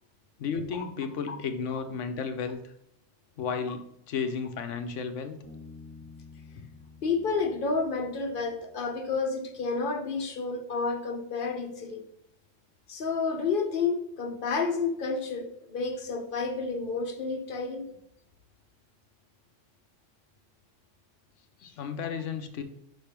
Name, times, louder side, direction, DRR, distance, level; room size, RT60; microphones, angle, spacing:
voice 1, 0.4-2.7 3.4-5.4 21.8-22.6, left 6 dB, 75° left, 8 dB, 1.1 m, -33 dB
Bass guitar, 5.4-8.9, left 4 dB, 10° left, 1.5 m, -50 dB
voice 2, 7.0-12.0 12.9-17.9 21.6-21.7, left 4 dB, 50° left, 5 dB, 1.0 m, -30 dB
5.9 x 3.4 x 5.8 m, 0.76 s
omnidirectional pair, 1.3 m